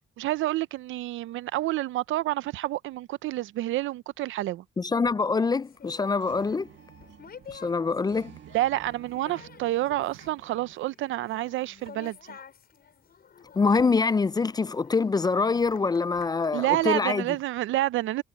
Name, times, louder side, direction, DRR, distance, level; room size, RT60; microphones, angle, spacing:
voice 1, 0.2-4.6 8.5-12.4 16.5-18.2, right 16 dB, 80° right, 0.6 m, -28 dB
voice 2, 4.8-6.7 7.5-8.4 13.6-17.3, left 4 dB, 20° left, 0.3 m, -25 dB
sound 1, 4.9-5.3 5.8-5.9 6.2-10.8, right 11 dB, 65° right, 2.0 m, -52 dB
sound 2, 5.6-17.3, left 7 dB, 50° left, 7.0 m, -51 dB
cardioid pair, 90°, 20 cm